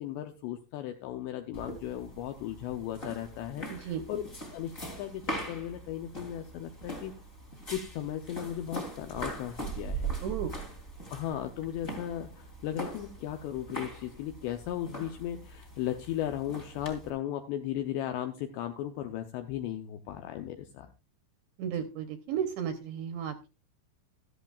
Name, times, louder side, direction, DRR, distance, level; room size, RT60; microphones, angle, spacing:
voice 1, 0.0-4.2 4.5-7.1 7.7-10.1 11.1-20.9, left 11 dB, 80° left, 6 dB, 2.5 m, -36 dB
sound 1, 1.5-17.1, right 2 dB, 25° left, 1.2 m, -41 dB
voice 2, 3.7-4.0 10.2-10.5 21.6-23.5, right 8 dB, 80° right, 7 dB, 2.6 m, -34 dB
13.5 x 13.0 x 2.4 m, 0.30 s
omnidirectional pair, 5.8 m